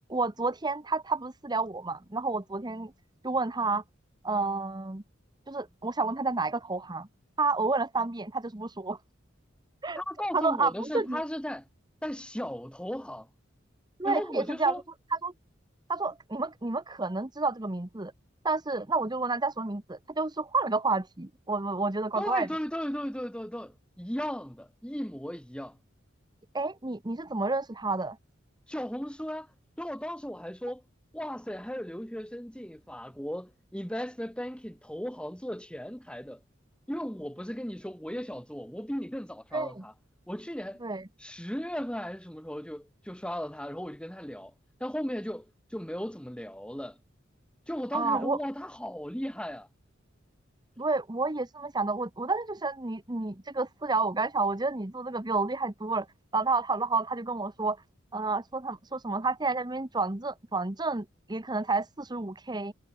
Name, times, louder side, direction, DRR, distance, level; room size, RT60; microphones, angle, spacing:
voice 1, 0.1-2.9 3.2-3.8 4.2-5.0 5.5-7.1 7.4-9.0 9.8-10.0 10.3-11.2 14.0-14.8 15.1-15.3 15.9-18.1 18.4-22.5 26.5-28.2 39.5-39.8 40.8-41.1 47.9-48.4 50.8-56.1 56.3-57.8 58.1-62.7, right 3 dB, 20° right, 1.1 m, -30 dB
voice 2, 10.0-11.6 12.0-13.3 14.0-14.8 22.2-25.8 28.7-29.5 29.8-30.8 31.1-36.4 36.9-39.9 40.3-40.8 41.2-44.5 44.8-47.0 47.7-49.7, equal, 5° left, 4.6 m, -36 dB
head